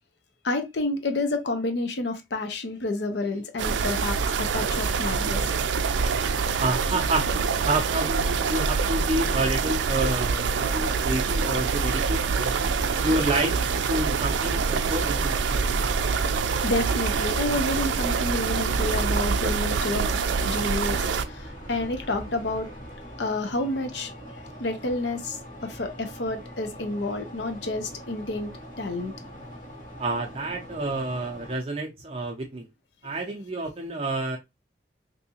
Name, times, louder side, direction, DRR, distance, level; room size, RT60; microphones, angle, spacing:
voice 1, 0.4-5.5 16.6-22.7 23.2-24.1 24.6-28.5 28.8-29.1, left 2 dB, 75° left, 0.7 m, -29 dB
sound 1, 3.6-21.3, right 5 dB, 90° right, 0.4 m, -25 dB
voice 2, 6.6-7.3 7.6-12.6 13.0-13.6 13.9-15.7 30.0-32.7 33.0-34.4, right 2 dB, 30° right, 0.5 m, -29 dB
sound 2, 12.6-31.6, equal, 45° left, 1.3 m, -41 dB
3.5 x 2.7 x 2.8 m
head